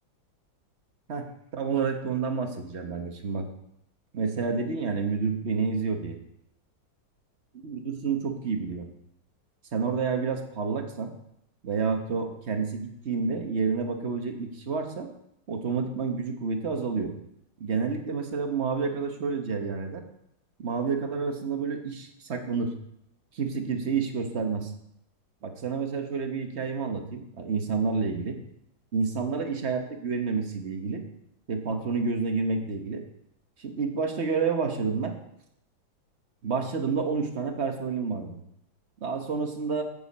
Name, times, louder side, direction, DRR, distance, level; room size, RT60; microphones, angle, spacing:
voice 1, 1.5-3.5 4.1-6.2 7.5-8.9 9.7-11.1 11.6-15.1 15.5-17.1 17.6-20.0 20.6-22.7 23.3-24.7 25.4-28.4 28.9-31.0 31.5-33.0 33.6-35.2 36.4-38.4 39.0-39.8, right 5 dB, 40° right, 5 dB, 1.2 m, -29 dB
15.0 x 7.0 x 4.2 m, 0.78 s
omnidirectional pair, 2.1 m